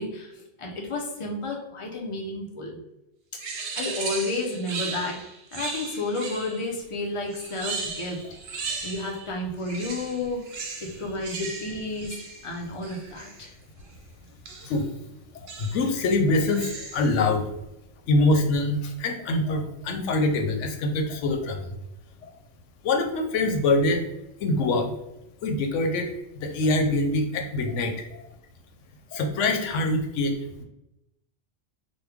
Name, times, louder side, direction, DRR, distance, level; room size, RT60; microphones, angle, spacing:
voice 1, 0.0-2.8 3.5-5.2 5.5-8.2 8.5-10.4 10.8-12.2 12.4-13.5, left 2 dB, 35° left, 0 dB, 0.5 m, -31 dB
sound 1, 3.4-6.7 7.3-9.3 9.6-13.4 14.5-14.8 15.5-15.9 16.4-17.2, right 4 dB, 65° right, 0.8 m, -36 dB
voice 2, 15.3-17.5 18.1-21.8 22.2-22.3 22.8-24.0 24.4-24.9 25.4-28.3 29.1-30.6, left 2 dB, 90° left, 4 dB, 0.9 m, -24 dB
3.1 x 2.2 x 3.4 m, 0.89 s
omnidirectional pair, 1.2 m